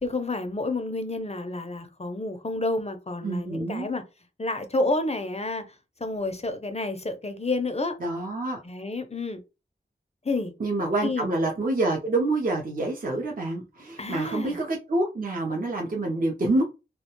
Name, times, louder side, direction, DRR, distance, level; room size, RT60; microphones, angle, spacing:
voice 1, 0.0-4.0 4.4-8.0 8.6-9.4 10.2-10.5 11.0-11.3 14.0-14.6, left 2 dB, 35° left, 0.4 m, -29 dB
voice 2, 3.2-3.9 8.0-8.6 10.6-16.6, right 2 dB, 45° right, 0.5 m, -27 dB
2.3 x 2.1 x 2.9 m
wide cardioid pair, 60°, 20 cm